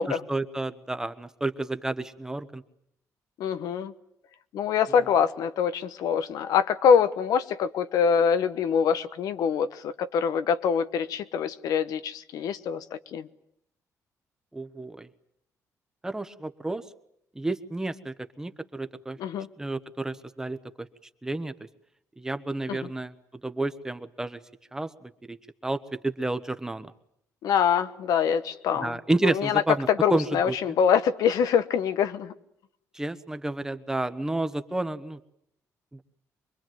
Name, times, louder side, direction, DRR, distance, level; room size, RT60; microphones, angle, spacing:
voice 1, 0.0-2.6 5.0-5.1 14.5-15.1 16.0-16.9 17.3-19.2 19.6-20.9 21.2-21.5 22.2-24.4 24.7-25.4 25.6-26.9 28.7-30.6 32.9-35.2 35.9-36.0, right 2 dB, 10° right, 10 dB, 1.2 m, -31 dB
voice 2, 3.4-3.9 4.5-12.8 13.1-13.2 19.2-19.5 22.7-22.8 27.4-28.9 29.4-29.6 30.0-32.3, left 7 dB, 85° left, 11 dB, 1.2 m, -24 dB
25.0 x 22.5 x 9.2 m, 0.73 s
cardioid pair, 135°, 6 cm